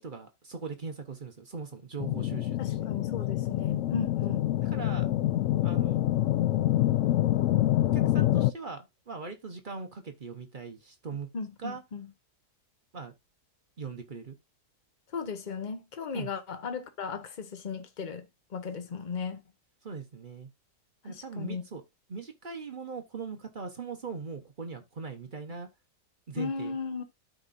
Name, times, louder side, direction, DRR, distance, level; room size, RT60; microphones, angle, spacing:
voice 1, 0.0-2.9 4.3-5.1 5.6-6.0 7.9-11.3 11.6-11.8 12.9-13.1 13.8-14.4 16.1-16.3 19.8-20.5 21.0-21.8 22.1-25.7 26.3-26.8, right 4 dB, 40° right, 0.9 m, -40 dB
sound 1, 2.0-8.5, left 14 dB, 70° left, 0.7 m, -26 dB
voice 2, 2.6-4.4 11.3-12.1 15.1-19.4 21.0-21.6 26.4-27.0, left 5 dB, 35° left, 0.9 m, -36 dB
13.0 x 4.4 x 2.5 m
omnidirectional pair, 1.7 m